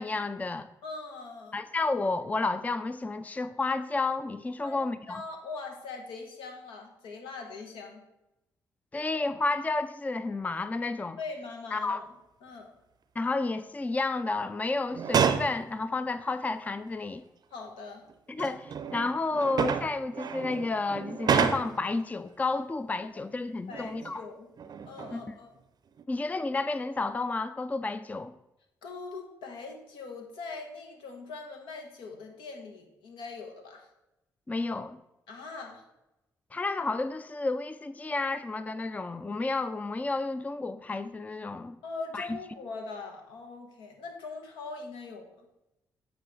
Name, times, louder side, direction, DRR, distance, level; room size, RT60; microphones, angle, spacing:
voice 1, 0.0-0.7 1.5-5.2 8.9-11.2 11.7-12.0 13.2-17.2 18.3-24.3 25.1-25.3 26.1-28.3 34.5-35.0 36.5-41.8 42.1-42.4, left 3 dB, 20° left, 12 dB, 0.4 m, -31 dB
voice 2, 0.8-1.6 4.6-4.8 5.1-8.0 11.2-12.0 12.4-12.7 17.5-18.0 23.7-24.5 24.8-25.5 28.8-33.9 35.3-35.8 41.8-45.5, left 4 dB, 85° left, 3 dB, 1.0 m, -41 dB
sound 1, 14.9-15.6 16.7-16.8 18.1-21.9 23.7-24.2 24.6-25.3 25.9-26.0, right 6 dB, 55° right, 0.5 m, -30 dB
8.9 x 3.1 x 4.6 m, 0.91 s
supercardioid pair, 55°, 8 cm